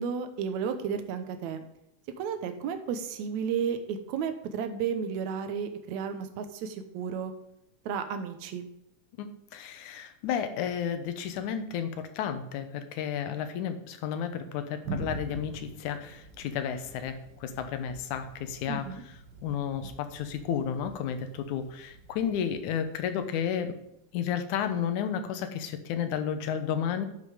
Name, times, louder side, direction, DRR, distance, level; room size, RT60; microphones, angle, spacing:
voice 1, 0.0-1.6 2.2-7.3 7.9-8.7 18.7-19.0, right 7 dB, 75° right, 8 dB, 2.2 m, -33 dB
voice 2, 9.5-18.8 19.4-23.8 24.1-27.1, left 8 dB, 85° left, 8 dB, 2.4 m, -32 dB
Thunder, 14.8-24.3, right 3 dB, 45° right, 1.8 m, -45 dB
11.0 x 5.4 x 4.9 m, 0.83 s
omnidirectional pair, 3.4 m